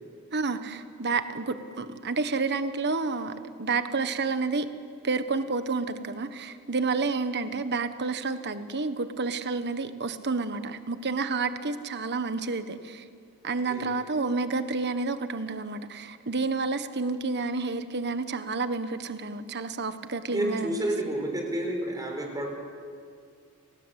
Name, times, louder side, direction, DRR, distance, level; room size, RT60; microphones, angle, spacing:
voice 1, 0.3-4.7 5.0-13.0 13.4-20.8 21.1-21.2, right 4 dB, 50° right, 10 dB, 1.4 m, -30 dB
voice 2, 20.3-22.5, right 1 dB, 15° right, 2 dB, 4.5 m, -30 dB
29.0 x 20.5 x 8.3 m, 2.2 s
head